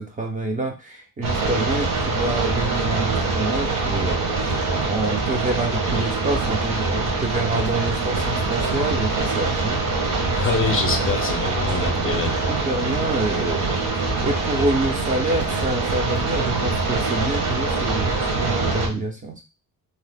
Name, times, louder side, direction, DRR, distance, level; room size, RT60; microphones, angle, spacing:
voice 1, 0.0-4.6 4.8-9.8 10.4-10.5 11.9-13.7 14.2-19.4, right 2 dB, 25° right, 2 dB, 0.4 m, -27 dB
sound 1, 1.2-18.9, right 3 dB, 65° right, 1.1 m, -24 dB
voice 2, 10.4-12.5, left 5 dB, 40° left, 5 dB, 0.5 m, -26 dB
2.8 x 2.0 x 3.3 m, 0.29 s
cardioid pair, 145°, 35 cm